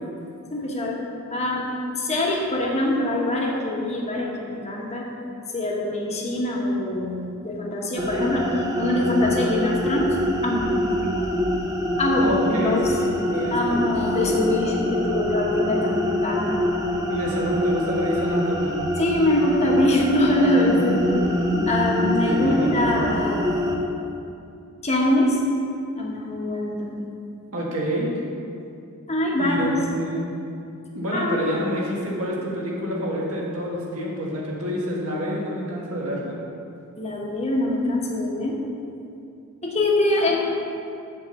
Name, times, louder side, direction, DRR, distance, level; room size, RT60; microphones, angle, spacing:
voice 1, 0.5-1.0 1.3-1.7 1.9-5.1 5.5-10.2 10.4-11.1 12.0-13.0 13.5-16.6 19.0-21.0 21.7-23.5 24.8-25.4 25.9-27.1 29.1-29.7 31.1-31.4 37.0-38.6 39.6-40.4, left 1 dB, 30° left, -2 dB, 1.2 m, -23 dB
sound 1, 8.0-23.8, equal, 15° right, 0.7 m, -25 dB
voice 2, 12.0-13.8 17.1-18.8 20.7-23.0 27.5-28.1 29.4-30.3 30.9-36.4, equal, 70° right, -4 dB, 1.8 m, -28 dB
8.5 x 4.2 x 7.0 m, 2.6 s
head